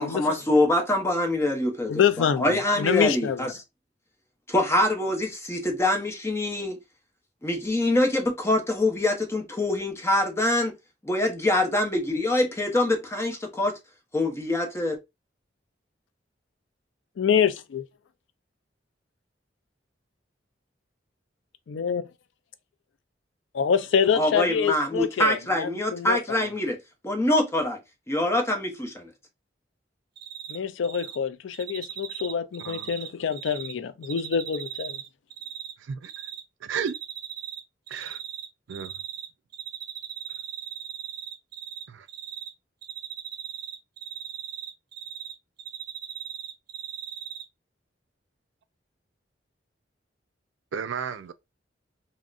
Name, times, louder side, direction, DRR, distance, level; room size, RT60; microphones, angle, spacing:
voice 1, 0.0-3.5 4.5-6.8 7.4-10.7 11.0-13.8 14.1-15.0 24.1-26.8 27.0-27.8 28.1-29.1, left 1 dB, 15° left, 0.7 m, -24 dB
voice 2, 1.9-3.5 17.2-17.8 21.7-22.0 23.5-26.4 30.5-35.0, left 7 dB, 80° left, 0.4 m, -26 dB
Cricket, 30.2-30.6 30.8-31.2 31.5-33.7 34.0-35.7 36.0-36.4 36.8-37.6 37.9-39.3 39.5-41.8 42.1-42.5 42.8-45.3 45.6-47.4, right 9 dB, 55° right, 0.7 m, -37 dB
voice 3, 35.8-36.3 36.6-37.0 37.9-38.2 38.7-39.0 41.9-42.1 50.7-51.3, right 7 dB, 85° right, 0.4 m, -33 dB
3.6 x 2.1 x 2.4 m
head